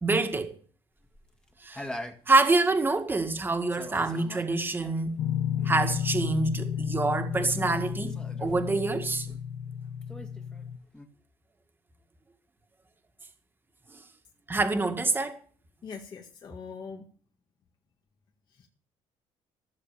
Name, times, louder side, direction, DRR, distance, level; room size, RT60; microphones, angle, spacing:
voice 1, 0.0-0.5 1.6-1.9 2.3-5.2 5.6-9.3 14.5-15.4, right 3 dB, 20° right, 1.9 m, -26 dB
sound 1, 1.0-3.4 3.7-9.7 10.0-11.1, left 1 dB, 10° left, 1.8 m, -45 dB
sound 2, 5.2-10.8, left 9 dB, 75° left, 1.0 m, -32 dB
voice 2, 15.8-17.0 18.5-18.7, left 5 dB, 40° left, 1.7 m, -42 dB
15.0 x 7.1 x 6.8 m
cardioid pair, 115°, 11 cm